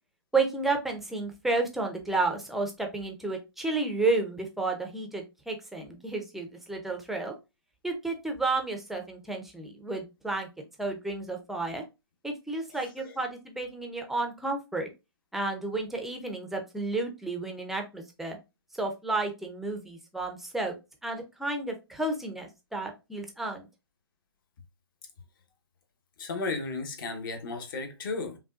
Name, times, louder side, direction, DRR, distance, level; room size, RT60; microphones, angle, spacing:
voice 1, 0.3-7.3 7.8-10.5 10.8-11.8 12.2-14.9 15.3-18.4 18.8-20.7 21.0-23.7, right 3 dB, ahead, 0.6 m, -31 dB
voice 2, 12.7-13.2 26.2-28.4, left 3 dB, 50° left, 1.1 m, -34 dB
5.3 x 2.3 x 2.4 m
figure-of-eight pair, 130°, 14 cm